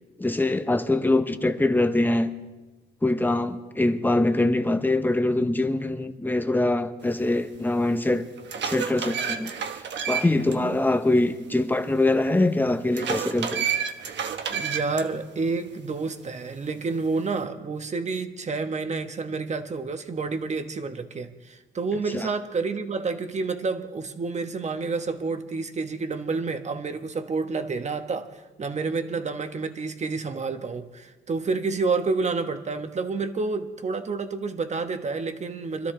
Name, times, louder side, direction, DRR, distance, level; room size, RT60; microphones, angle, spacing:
voice 1, 0.2-2.3 3.0-8.2 8.6-9.5 10.1-13.6 22.1-22.3, left 2 dB, 10° left, 1.1 m, -23 dB
sound 1, 7.5-7.6 8.2-10.5 10.9-11.0 12.9-15.0, right 7 dB, 65° right, 1.3 m, -30 dB
voice 2, 10.5-10.8 14.5-35.9, right 4 dB, 35° right, 1.3 m, -29 dB
25.0 x 13.0 x 3.8 m
cardioid pair, 90°, 20 cm